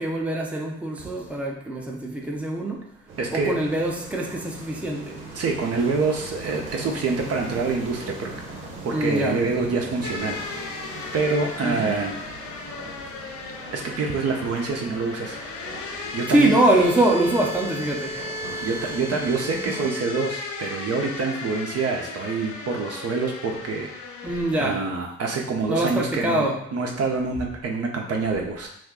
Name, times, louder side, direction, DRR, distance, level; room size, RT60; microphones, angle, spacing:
voice 1, 0.0-2.9 3.3-5.2 8.9-9.4 11.6-11.9 16.3-18.2 24.2-24.9 25.7-26.6, right 1 dB, 5° right, -1 dB, 0.6 m, -23 dB
sound 1, 3.1-19.9, right 2 dB, 85° right, 0.8 m, -40 dB
voice 2, 3.2-3.5 5.3-8.3 8.8-10.6 11.1-12.2 13.7-15.4 15.8-16.5 18.1-18.2 18.6-24.1 24.6-28.7, right 4 dB, 50° right, 1 dB, 0.6 m, -26 dB
sound 2, 10.0-24.6, left 3 dB, 65° left, 0.5 m, -35 dB
2.5 x 2.2 x 3.6 m, 0.71 s
hypercardioid pair, 50°, 32 cm